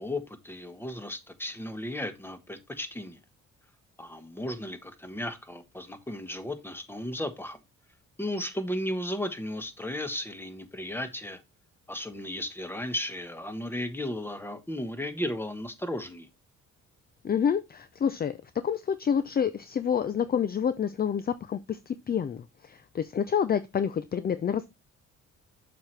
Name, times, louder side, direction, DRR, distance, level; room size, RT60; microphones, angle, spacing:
voice 1, 0.0-3.2 4.0-7.6 8.2-11.4 11.9-16.3, left 1 dB, 5° left, 1.2 m, -35 dB
voice 2, 17.2-18.4 18.6-24.7, left 7 dB, 30° left, 0.5 m, -28 dB
7.1 x 6.0 x 3.3 m
cardioid pair, 90°, 30 cm